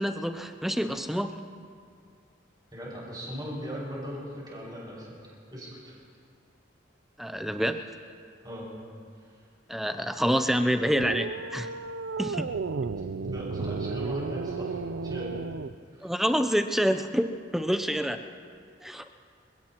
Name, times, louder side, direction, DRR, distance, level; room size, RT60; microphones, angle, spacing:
voice 1, 0.0-1.3 7.2-7.8 9.7-11.7 12.2-12.5 16.0-18.2 18.8-19.1, equal, ahead, 8 dB, 0.5 m, -27 dB
voice 2, 2.7-6.0 8.4-8.7 13.2-15.3 15.9-16.1, equal, 20° right, -5 dB, 5.7 m, -39 dB
sound 1, 11.0-15.8, right 4 dB, 75° right, 0.5 m, -33 dB
28.0 x 17.0 x 3.0 m, 2.2 s
head